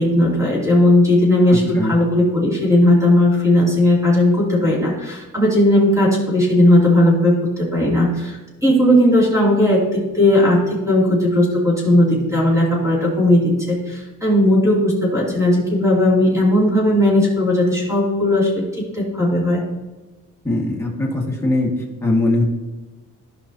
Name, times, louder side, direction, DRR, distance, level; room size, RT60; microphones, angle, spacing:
voice 1, 0.0-19.6, left 1 dB, 10° right, -4 dB, 2.7 m, -16 dB
voice 2, 1.5-1.9 20.4-21.7 22.0-22.4, left 2 dB, 10° left, -3 dB, 1.9 m, -20 dB
14.0 x 5.4 x 2.8 m, 1.2 s
wide cardioid pair, 130°, 33 cm